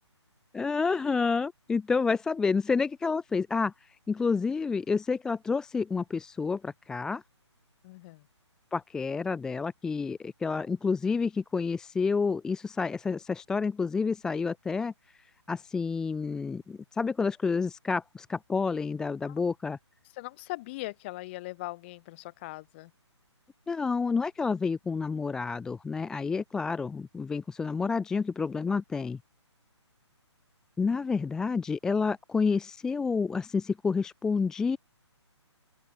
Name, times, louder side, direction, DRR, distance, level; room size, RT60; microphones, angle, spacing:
voice 1, 0.5-7.2 8.7-14.9 15.5-19.8 23.7-29.2 30.8-34.8, left 5 dB, 5° left, 0.6 m, -29 dB
voice 2, 7.8-8.3 19.3-19.4 20.1-22.9, left 20 dB, 25° left, 1.7 m, -40 dB
open air
figure-of-eight pair, 135°, 15 cm